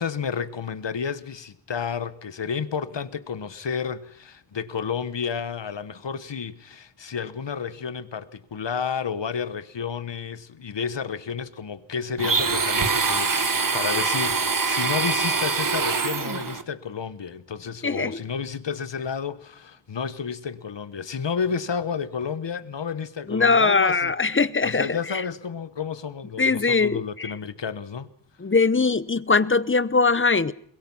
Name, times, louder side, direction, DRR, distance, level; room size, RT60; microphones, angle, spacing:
voice 1, 0.0-24.1 24.6-28.1, left 6 dB, 75° left, 1.2 m, -31 dB
Domestic sounds home sounds, 12.2-16.6, right 4 dB, 50° right, 1.4 m, -24 dB
voice 2, 17.8-18.2 23.3-25.2 26.4-27.3 28.4-30.5, left 4 dB, 30° left, 0.8 m, -21 dB
22.0 x 21.5 x 5.6 m
wide cardioid pair, 80°, 43 cm